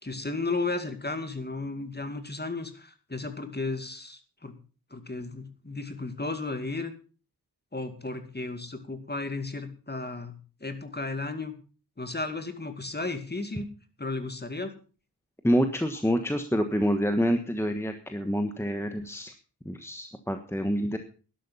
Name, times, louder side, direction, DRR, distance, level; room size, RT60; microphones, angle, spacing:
voice 1, 0.0-4.5 4.9-6.9 7.7-10.4 10.6-11.5 12.0-13.7 14.0-14.7, left 3 dB, 25° left, 8 dB, 2.3 m, -34 dB
voice 2, 15.4-19.3 19.6-21.0, equal, 5° left, 6 dB, 1.3 m, -27 dB
12.5 x 11.5 x 5.6 m, 0.37 s
wide cardioid pair, 95°, 41 cm